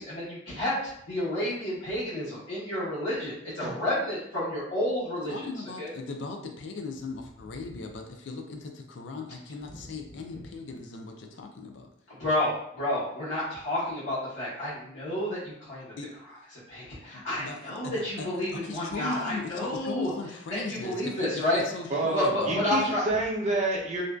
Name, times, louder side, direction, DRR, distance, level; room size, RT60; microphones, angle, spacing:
voice 1, 0.0-5.4 5.8-5.9 10.3-10.4 12.1-15.9 16.7-20.1 20.5-21.6 22.1-23.0, left 1 dB, 85° left, -10 dB, 1.0 m, -30 dB
voice 2, 5.3-11.9 16.0-16.1 17.1-22.9, left 3 dB, 70° left, 4 dB, 0.4 m, -38 dB
voice 3, 21.9-24.0, right 2 dB, 35° right, -3 dB, 0.5 m, -29 dB
2.5 x 2.2 x 2.2 m, 0.74 s
head